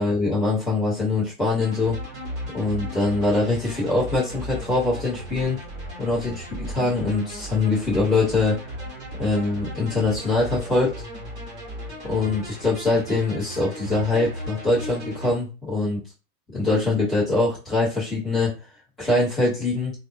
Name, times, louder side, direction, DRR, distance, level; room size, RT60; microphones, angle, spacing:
voice 1, 0.0-2.0 2.5-5.6 6.0-8.5 9.2-10.9 12.0-16.0 16.5-18.5 19.0-19.9, left 2 dB, ahead, -12 dB, 0.4 m, -23 dB
sound 1, 1.6-15.3, equal, 25° right, 1.8 m, -36 dB
3.4 x 2.6 x 2.3 m, 0.33 s
figure-of-eight pair, 110°, 48 cm